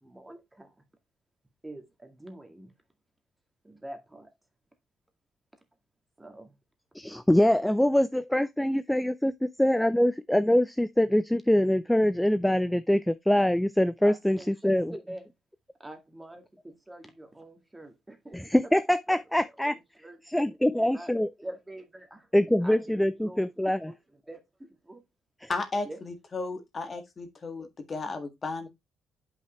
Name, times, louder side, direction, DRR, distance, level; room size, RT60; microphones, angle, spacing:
voice 1, 0.0-0.7 1.6-2.7 3.6-4.3 6.2-6.5 14.0-14.7 15.1-15.3 15.8-18.8 19.1-20.2 20.8-21.1 21.4-22.3 22.6-24.0 24.3-25.0 25.9-26.0, right 1 dB, 15° right, 2.0 m, -45 dB
voice 2, 7.0-9.3 9.6-14.9 18.3-19.7 20.3-21.3 22.3-23.9 25.4-25.5, left 1 dB, 5° left, 0.4 m, -24 dB
voice 3, 25.5-28.7, left 3 dB, 35° left, 1.7 m, -34 dB
7.9 x 5.7 x 3.1 m
cardioid pair, 90°, 0 cm